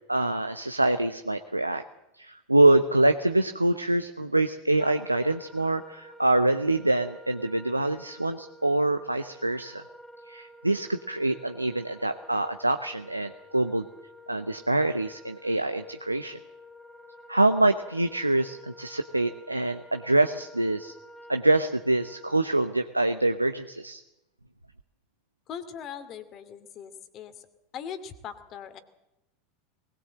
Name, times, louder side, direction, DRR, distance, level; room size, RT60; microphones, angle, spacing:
voice 1, 0.1-1.8 2.1-9.8 10.3-13.8 14.3-16.4 17.3-20.9 21.3-24.0, right 2 dB, 90° right, 8 dB, 0.8 m, -25 dB
Wind instrument woodwind instrument, 4.8-22.9, left 1 dB, 5° left, 2.2 m, -50 dB
voice 2, 25.5-27.5 27.7-28.8, left 8 dB, 40° left, 10 dB, 2.5 m, -40 dB
20.5 x 19.5 x 7.7 m, 0.92 s
figure-of-eight pair, 80°, 0 cm